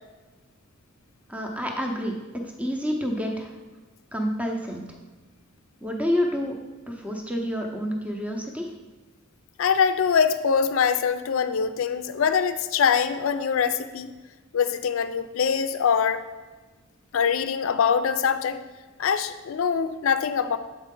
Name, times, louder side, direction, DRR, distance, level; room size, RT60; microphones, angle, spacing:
voice 1, 1.3-2.1 2.6-3.5 4.1-4.8 5.8-6.5 6.9-8.7, equal, 5° right, 2 dB, 0.6 m, -28 dB
voice 2, 9.6-14.1 14.5-16.2 17.1-18.6 19.0-20.6, left 6 dB, 70° left, 10 dB, 0.4 m, -23 dB
7.3 x 4.5 x 3.7 m, 1.3 s
head